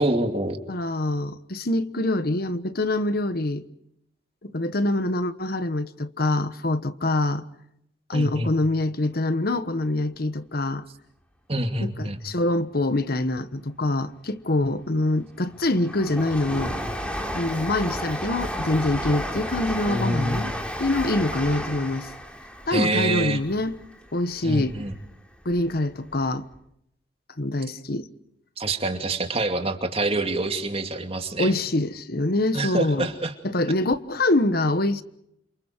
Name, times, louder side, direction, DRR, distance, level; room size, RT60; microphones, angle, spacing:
voice 1, 0.0-0.6 8.1-8.5 11.5-12.2 19.9-20.5 22.7-23.4 24.4-24.9 28.6-31.5 32.5-33.3, right 2 dB, 30° right, 2.6 m, -26 dB
voice 2, 0.7-3.6 4.4-7.4 8.1-10.8 11.8-16.8 17.3-20.5 20.8-22.1 22.7-23.8 24.1-24.8 25.4-26.5 27.4-28.1 31.4-33.1 33.4-35.0, left 2 dB, 55° left, 1.2 m, -25 dB
Train, 14.8-25.0 25.4-26.3 26.5-26.6, equal, 5° left, 3.3 m, -33 dB
30.0 x 28.0 x 4.5 m
head